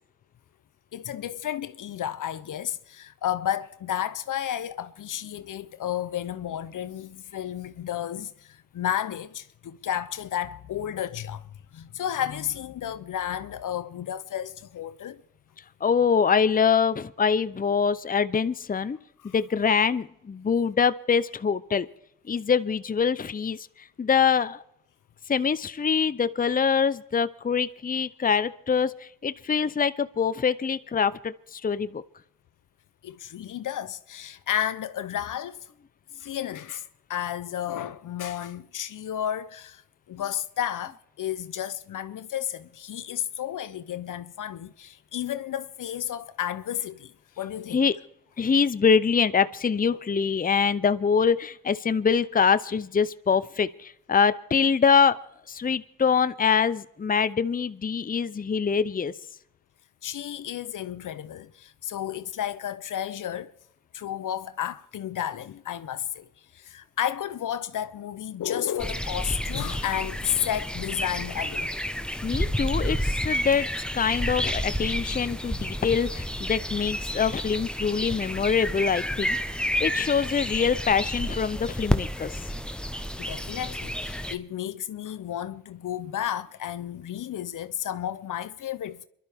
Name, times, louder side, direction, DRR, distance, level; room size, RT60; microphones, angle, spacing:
voice 1, 0.9-11.4 11.7-15.2 19.2-19.3 33.0-35.7 36.2-39.8 40.1-47.8 60.0-63.5 63.9-71.7 83.2-89.1, left 10 dB, 70° left, 0.7 m, -32 dB
voice 2, 15.8-19.0 19.2-21.9 22.3-24.6 25.3-32.0 47.7-47.9 48.4-55.2 55.5-59.1 72.2-73.7 73.9-79.4 79.8-82.4, left 6 dB, 25° left, 0.6 m, -24 dB
sound 1, 68.8-84.4, equal, 5° left, 1.1 m, -30 dB
28.5 x 12.0 x 3.5 m
supercardioid pair, 40°, 33 cm